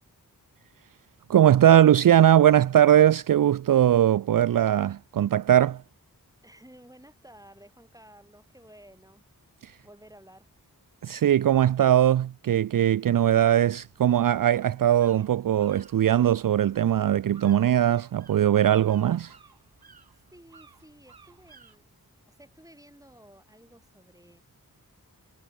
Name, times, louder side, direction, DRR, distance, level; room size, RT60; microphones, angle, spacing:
voice 1, 1.3-5.8 9.6-9.7 11.0-19.3, right 11 dB, 65° right, 0.5 m, -20 dB
voice 2, 6.4-9.2 9.8-10.5 20.1-21.9 22.3-24.4, right 1 dB, 10° right, 7.4 m, -53 dB
sound 1, 13.4-21.8, right 5 dB, 85° right, 3.5 m, -56 dB
cardioid pair, 40°, 36 cm